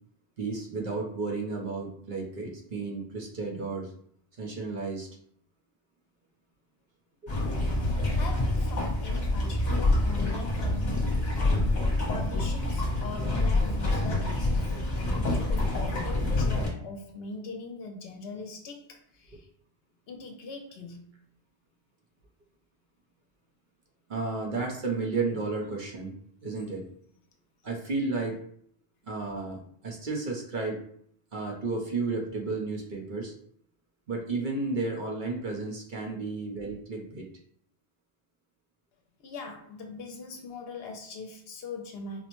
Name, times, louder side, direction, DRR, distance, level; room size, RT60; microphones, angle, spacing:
voice 1, 0.4-3.9 4.4-5.1 7.2-7.3 24.1-26.1 26.4-26.9 27.6-28.4 29.0-30.8 31.3-33.3 34.1-37.3, right 3 dB, 50° right, 0.8 m, -32 dB
sound 1, 7.3-16.7, left 2 dB, 45° left, 1.0 m, -27 dB
voice 2, 7.9-11.2 12.1-19.5 20.1-21.0 39.2-42.3, left 3 dB, 65° left, 0.8 m, -42 dB
4.3 x 2.0 x 3.0 m
omnidirectional pair, 1.1 m